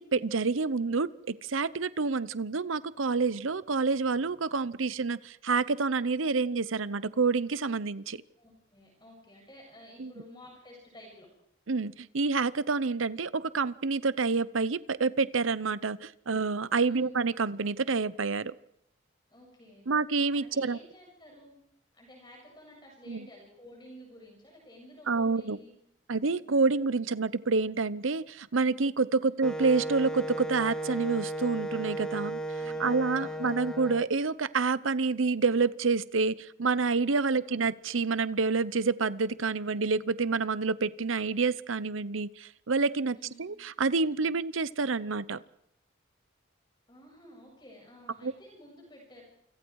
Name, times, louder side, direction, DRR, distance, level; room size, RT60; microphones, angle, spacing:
voice 1, 0.0-8.2 10.0-10.1 11.7-18.5 19.9-20.8 23.1-23.3 25.1-25.6 26.1-32.4 32.8-45.4 48.2-48.3, right 4 dB, 85° right, 17 dB, 0.8 m, -28 dB
voice 2, 8.4-11.3 16.8-17.2 19.3-19.9 20.3-21.6 21.9-25.8 29.2-29.5 32.6-33.5 37.3-37.6 43.1-43.5 46.9-49.2, equal, 20° left, 0 dB, 7.0 m, -52 dB
Wind instrument woodwind instrument, 29.4-34.0, right 1 dB, 5° left, 0.8 m, -35 dB
28.5 x 26.0 x 4.8 m, 0.76 s
head